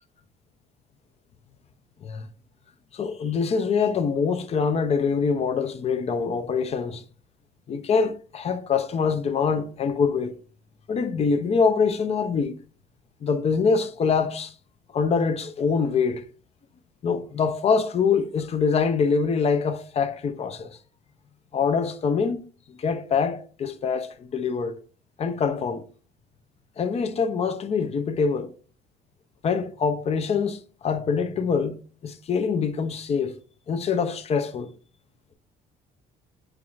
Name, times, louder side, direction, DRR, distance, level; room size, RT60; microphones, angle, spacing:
voice 1, 2.9-7.0 7.7-10.3 10.9-12.6 13.2-14.5 14.9-16.2 17.0-20.8 21.5-22.4 22.7-24.8 25.2-25.8 26.8-28.5 29.4-31.8 32.0-33.3 33.7-34.7, left 5 dB, 40° left, 0.5 m, -24 dB
4.7 x 3.0 x 2.4 m
cardioid pair, 110°, 17 cm